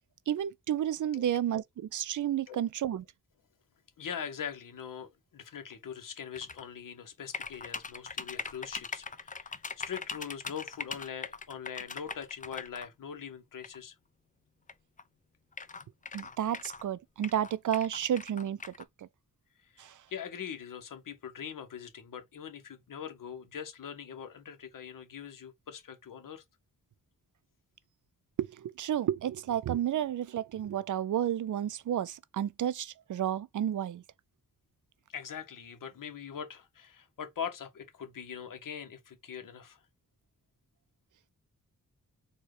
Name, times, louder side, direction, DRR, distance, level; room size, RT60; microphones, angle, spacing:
voice 1, 0.3-3.0 16.1-19.1 19.8-20.0 28.4-34.0, right 10 dB, 65° right, 0.5 m, -31 dB
voice 2, 4.0-13.9 19.7-26.4 35.1-39.8, left 7 dB, 65° left, 1.0 m, -42 dB
sound 1, 6.3-6.6 7.3-12.9 13.6-13.8 14.7-14.8 15.0-15.1 15.5-16.8 17.2-18.8, left 4 dB, 25° left, 0.4 m, -41 dB
4.2 x 2.3 x 4.7 m
wide cardioid pair, 105°, 34 cm